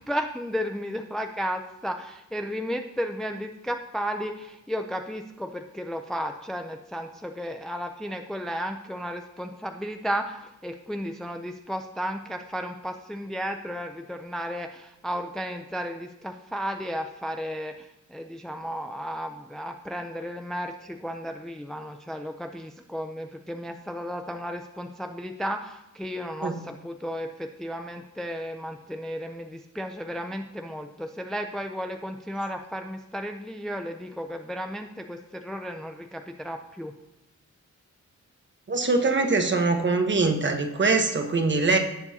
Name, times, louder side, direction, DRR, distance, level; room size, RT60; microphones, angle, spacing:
voice 1, 0.0-36.9, equal, ahead, 5 dB, 0.4 m, -34 dB
voice 2, 38.7-41.8, right 3 dB, 40° right, 5 dB, 1.2 m, -23 dB
17.5 x 7.0 x 2.8 m, 0.96 s
wide cardioid pair, 155°, 30 cm